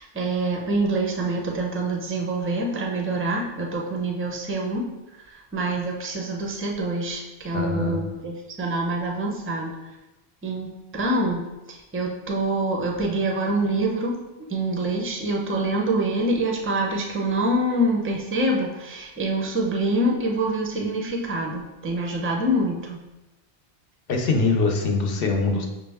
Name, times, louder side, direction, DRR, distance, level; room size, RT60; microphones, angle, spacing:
voice 1, 0.0-4.9 5.1-10.0 10.4-23.0, right 1 dB, 20° right, 0 dB, 0.4 m, -26 dB
voice 2, 7.5-8.1 24.1-25.7, left 3 dB, 65° left, 2 dB, 0.8 m, -23 dB
6.1 x 2.1 x 3.4 m, 1.0 s
omnidirectional pair, 1.0 m